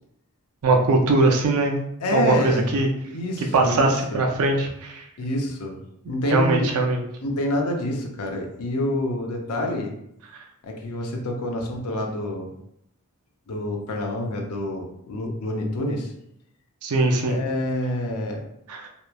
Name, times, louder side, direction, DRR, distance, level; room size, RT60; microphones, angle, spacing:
voice 1, 0.6-1.8 2.1-2.9 3.5-5.0 6.3-7.0 16.8-17.4 18.7-18.9, right 2 dB, 70° right, 3 dB, 0.4 m, -21 dB
voice 2, 2.0-2.7 3.1-4.3 5.2-5.8 6.1-6.7 7.2-9.9 10.6-12.5 13.5-16.1 17.3-18.4, left 1 dB, 80° left, 2 dB, 0.5 m, -27 dB
2.9 x 2.1 x 2.2 m, 0.77 s
head